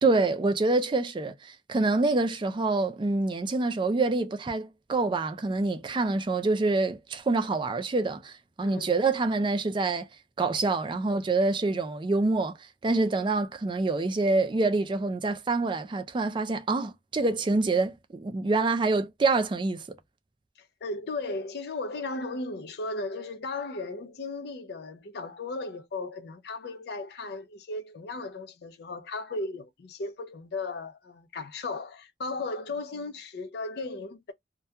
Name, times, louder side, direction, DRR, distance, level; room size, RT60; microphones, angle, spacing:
voice 1, 0.0-10.1 10.4-12.6 12.8-19.8, right 3 dB, 25° right, 0.4 m, -26 dB
voice 2, 8.6-9.0 20.6-34.3, left 3 dB, 60° left, 0.4 m, -36 dB
2.2 x 2.2 x 2.7 m
head